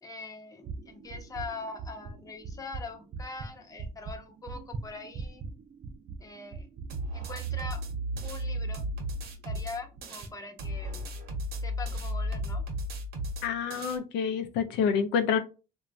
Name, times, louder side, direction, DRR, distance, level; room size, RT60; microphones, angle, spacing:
voice 1, 0.0-5.4 6.2-6.7 7.1-7.8 8.2-8.9 9.4-11.1 11.6-12.6, left 3 dB, 20° left, 5 dB, 0.6 m, -42 dB
sound 1, 0.6-9.6 10.0-10.3 10.7-11.0, right 4 dB, 40° right, 0.4 m, -42 dB
sound 2, 6.9-10.3 10.6-14.0, right 1 dB, 65° right, 0.8 m, -34 dB
voice 2, 13.4-15.4, left 7 dB, 90° left, 8 dB, 0.4 m, -27 dB
3.0 x 2.2 x 2.5 m, 0.31 s
cardioid pair, 110°, 17 cm